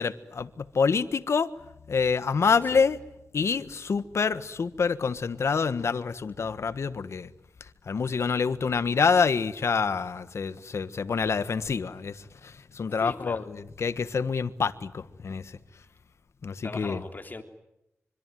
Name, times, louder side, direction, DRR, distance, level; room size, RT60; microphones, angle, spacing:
voice 1, 0.0-1.5 1.9-3.0 3.3-7.3 7.6-15.6 16.4-17.0, left 5 dB, 70° left, 1.4 m, -27 dB
voice 2, 12.8-13.4 16.6-17.4, left 3 dB, 35° left, 3.4 m, -39 dB
25.5 x 25.0 x 9.3 m
wide cardioid pair, 75°, 5 cm